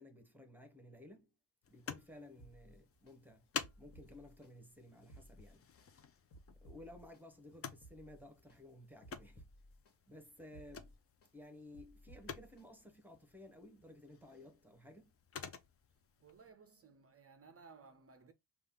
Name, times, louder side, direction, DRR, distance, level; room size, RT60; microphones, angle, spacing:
voice 1, 0.0-1.3 1.7-3.5 3.8-5.7 6.6-9.5 10.1-10.9 11.3-15.1, left 1 dB, 5° right, 0.9 m, -56 dB
sound 1, 1.6-16.5, left 6 dB, 35° left, 0.5 m, -51 dB
sound 2, 2.4-3.2 3.6-4.5 5.0-5.9 6.3-7.2 7.7-8.6 9.0-9.9 10.4-11.3 11.7-12.7 13.1-13.2, right 1 dB, 65° left, 1.6 m, -59 dB
voice 2, 16.2-18.3, right 5 dB, 35° right, 0.5 m, -59 dB
5.4 x 2.4 x 3.6 m
cardioid pair, 155°, 44 cm